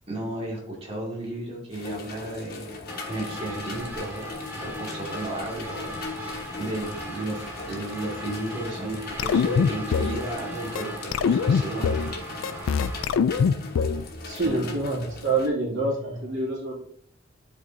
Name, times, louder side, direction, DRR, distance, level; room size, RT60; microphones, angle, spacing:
voice 1, 0.1-2.7 3.1-4.3 4.5-12.0 12.3-12.8 14.4-14.7, right 1 dB, 30° right, -4 dB, 2.3 m, -34 dB
sound 1, 1.7-15.5, left 3 dB, 50° left, 1.3 m, -39 dB
sound 2, 2.9-13.1, equal, 10° right, 1.4 m, -38 dB
sound 3, 9.2-10.2 10.8-10.9 11.1-12.1 12.4-14.0, left 6 dB, 90° left, 0.3 m, -22 dB
voice 2, 14.3-16.8, right 2 dB, 75° right, -4 dB, 2.5 m, -27 dB
11.0 x 4.3 x 2.7 m, 0.64 s
head